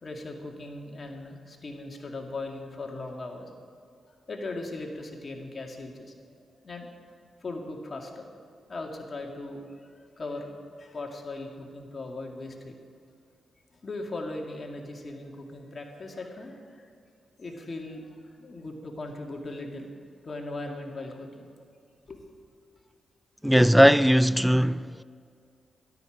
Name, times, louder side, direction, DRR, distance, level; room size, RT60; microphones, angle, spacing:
voice 1, 0.0-3.5 4.1-6.3 6.6-6.9 7.4-8.3 8.7-12.8 13.7-16.9 17.4-19.9 20.2-21.5 22.1-22.2, left 2 dB, 45° left, 2.2 m, -39 dB
voice 2, 23.4-25.0, equal, ahead, 0.3 m, -19 dB
13.0 x 12.5 x 5.0 m
cardioid pair, 60°, 0 cm